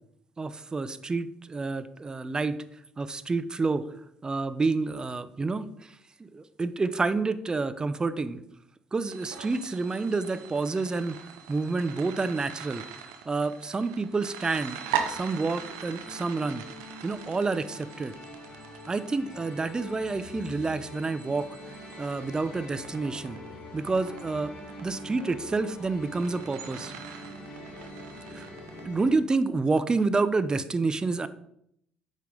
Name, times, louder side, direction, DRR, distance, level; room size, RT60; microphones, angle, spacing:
voice 1, 0.4-2.6 3.0-3.8 4.2-8.4 8.9-12.8 13.3-14.8 15.1-16.6 17.0-18.1 18.9-21.5 22.0-23.4 23.7-24.5 24.8-26.9 28.3-28.4 28.8-31.3, right 3 dB, 25° right, 13 dB, 0.6 m, -29 dB
sound 1, 9.0-28.8, right 8 dB, 75° right, 0.8 m, -41 dB
sound 2, 13.8-29.1, left 1 dB, 50° left, 2.8 m, -45 dB
8.6 x 5.5 x 3.8 m, 0.74 s
hypercardioid pair, 50°, 3 cm